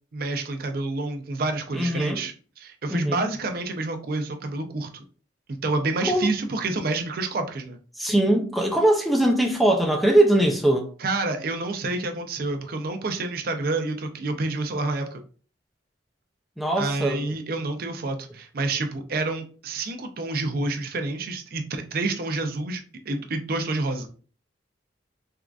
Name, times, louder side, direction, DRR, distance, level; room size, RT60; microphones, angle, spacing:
voice 1, 0.1-5.0 5.6-7.8 11.0-15.2 16.8-24.1, right 2 dB, 55° right, 0.5 m, -28 dB
voice 2, 1.7-2.2 2.9-3.2 6.1-6.3 8.0-10.9 16.6-17.2, right 1 dB, ahead, 0.4 m, -21 dB
3.6 x 2.4 x 2.3 m
head